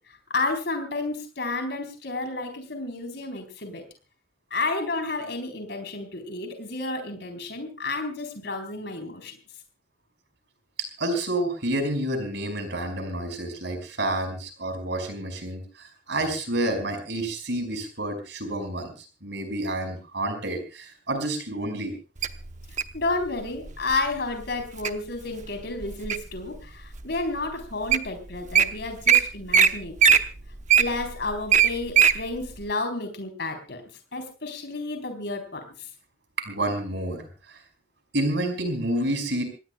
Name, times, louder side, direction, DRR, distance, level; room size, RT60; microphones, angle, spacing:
voice 1, 0.3-3.8 4.5-9.4 22.9-30.2 30.8-33.8 34.1-35.7, left 3 dB, 60° left, 5 dB, 4.0 m, -31 dB
voice 2, 11.0-21.9 36.4-37.6 38.1-39.4, right 1 dB, 65° right, 6 dB, 5.3 m, -29 dB
Wild animals, 22.2-23.0 23.7-24.0 24.5-24.9 25.4-26.4 27.0-27.1 27.6-27.7 27.9-28.1 28.3-28.6 29.1-29.2 29.5-29.7 30.0-32.2 32.6-32.7, right 7 dB, 40° right, 0.9 m, -18 dB
26.5 x 18.5 x 2.3 m, 0.33 s
head